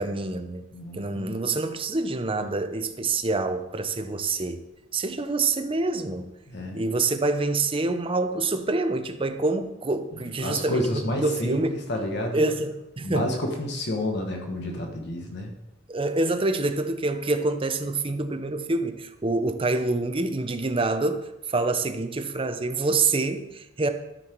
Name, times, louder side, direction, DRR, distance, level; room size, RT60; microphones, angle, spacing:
voice 1, 0.0-0.6 0.9-4.6 4.9-6.3 6.7-11.8 12.3-13.3 15.9-23.9, right 3 dB, 25° right, 0.7 m, -26 dB
voice 2, 0.7-1.4 6.5-6.8 10.4-12.4 13.0-15.5, left 1 dB, 60° left, 1.3 m, -30 dB
13.0 x 5.7 x 4.5 m
head